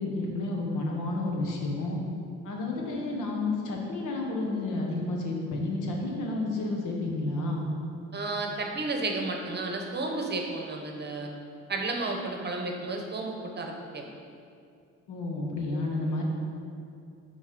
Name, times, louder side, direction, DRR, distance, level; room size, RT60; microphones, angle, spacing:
voice 1, 0.0-2.0 2.4-7.7 15.1-16.2, left 2 dB, 85° left, -1 dB, 1.2 m, -31 dB
voice 2, 8.1-11.3 11.7-14.0 15.7-15.9, right 2 dB, 35° right, 2 dB, 0.9 m, -32 dB
6.4 x 4.2 x 5.2 m, 2.4 s
cardioid pair, 90°, 30 cm